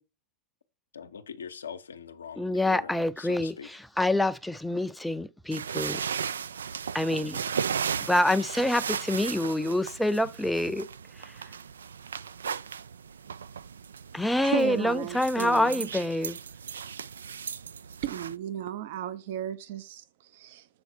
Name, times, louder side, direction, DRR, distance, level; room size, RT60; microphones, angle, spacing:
voice 1, 0.9-3.7, left 6 dB, 85° left, 0.7 m, -42 dB
voice 2, 2.4-3.5 4.0-6.0 6.9-7.4 8.1-10.9 11.2-11.3 14.1-16.4, left 1 dB, 5° left, 0.4 m, -26 dB
sound 1, 5.5-18.3, right 7 dB, 85° right, 0.3 m, -36 dB
voice 3, 14.4-15.9 18.0-20.7, right 11 dB, 60° right, 0.7 m, -34 dB
7.0 x 4.0 x 4.3 m
hypercardioid pair, 105°, 0 cm